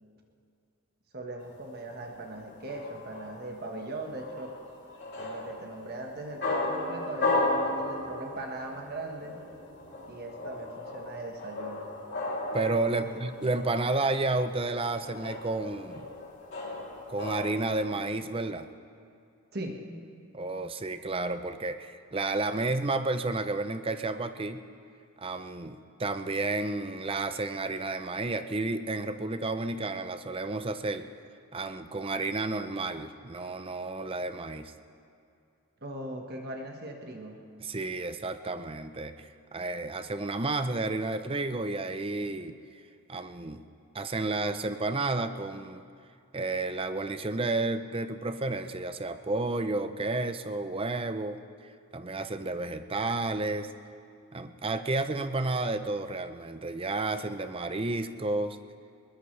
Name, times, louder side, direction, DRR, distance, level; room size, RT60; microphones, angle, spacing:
voice 1, 1.1-4.5 5.2-9.4 10.1-11.9 12.9-13.5 19.5-19.8 35.8-37.4, right 2 dB, 45° right, 2 dB, 1.5 m, -40 dB
sound 1, 1.5-17.9, left 2 dB, 50° left, 3.2 m, -36 dB
voice 2, 12.5-16.1 17.1-18.7 20.3-24.6 25.2-31.1 31.5-34.7 37.6-42.6 43.1-43.6 43.9-45.8 46.3-51.4 51.9-53.7 54.3-58.6, right 2 dB, 25° right, 10 dB, 0.6 m, -31 dB
21.0 x 20.5 x 3.3 m, 2.5 s
head